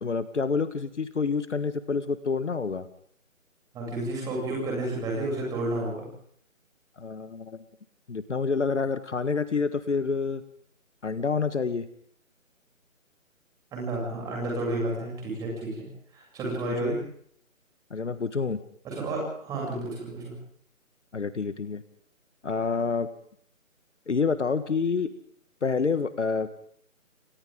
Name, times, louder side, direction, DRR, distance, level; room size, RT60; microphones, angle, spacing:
voice 1, 0.0-2.9 7.0-7.6 8.1-10.4 11.0-11.9 16.8-16.9 17.9-18.6 21.1-21.8 22.4-23.1 24.1-25.1 25.6-26.5, left 5 dB, 60° left, 12 dB, 1.7 m, -28 dB
voice 2, 3.7-6.0 13.7-15.9 16.1-17.0 18.8-20.3, right 2 dB, 10° right, -2 dB, 7.6 m, -31 dB
29.0 x 25.0 x 3.8 m, 0.63 s
figure-of-eight pair, 160°, 40 cm